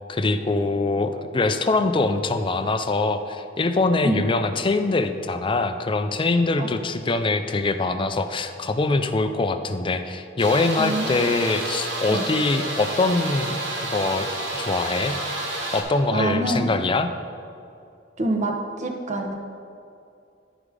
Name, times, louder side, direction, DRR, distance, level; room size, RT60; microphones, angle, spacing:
voice 1, 0.1-14.3 14.5-15.2 15.7-17.1, left 3 dB, 25° left, 9 dB, 0.4 m, -23 dB
sound 1, 10.4-15.8, right 1 dB, 80° right, 1.9 m, -30 dB
voice 2, 10.8-11.2 12.1-12.2 16.1-16.7 18.2-19.3, right 1 dB, 40° right, 2 dB, 0.9 m, -26 dB
11.0 x 5.0 x 4.9 m, 2.5 s
head